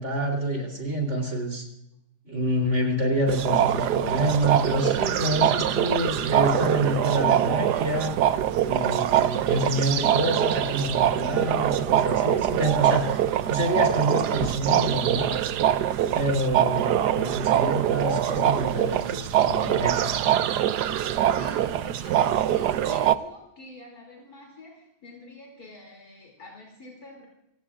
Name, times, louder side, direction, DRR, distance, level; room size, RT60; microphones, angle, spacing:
voice 1, 0.0-1.7 2.3-8.1 8.6-15.4 16.1-20.3, right 1 dB, 45° right, 2 dB, 3.9 m, -27 dB
sound 1, 3.3-23.2, right 11 dB, 90° right, 1.3 m, -24 dB
voice 2, 21.3-27.3, left 2 dB, 65° left, -1 dB, 3.5 m, -46 dB
27.0 x 17.0 x 2.5 m, 0.82 s
omnidirectional pair, 1.7 m